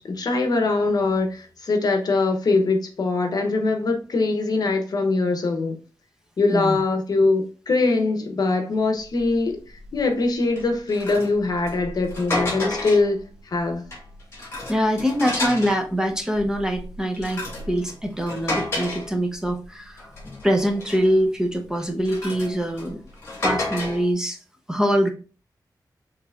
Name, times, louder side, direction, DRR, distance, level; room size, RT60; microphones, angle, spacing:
voice 1, 0.0-5.8 6.4-13.8, left 3 dB, 60° left, 0.9 m, -22 dB
sound 1, 9.2-9.3 9.8-10.0 10.6-13.2 13.7-15.8 16.3-19.6 20.0-21.2 21.8-24.1, left 2 dB, 35° left, 2.4 m, -31 dB
voice 2, 14.7-20.1 20.4-23.0 23.4-24.4 24.7-25.1, equal, 10° right, 0.7 m, -24 dB
6.7 x 3.2 x 2.4 m
wide cardioid pair, 160°, 7 cm